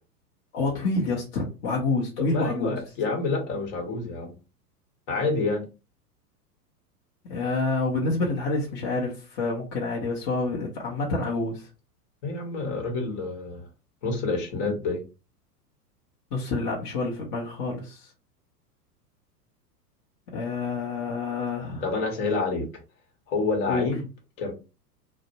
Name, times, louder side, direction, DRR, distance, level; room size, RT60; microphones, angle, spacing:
voice 1, 0.5-2.8 7.3-11.7 16.3-18.1 20.3-21.8 23.7-23.9, left 3 dB, 30° left, -3 dB, 0.6 m, -28 dB
voice 2, 2.2-4.3 5.1-5.6 12.2-13.6 14.0-15.0 21.8-22.7 23.3-24.0 24.4-24.5, left 3 dB, 50° left, 3 dB, 1.0 m, -28 dB
2.4 x 2.0 x 2.8 m, 0.30 s
hypercardioid pair, 100°, 48 cm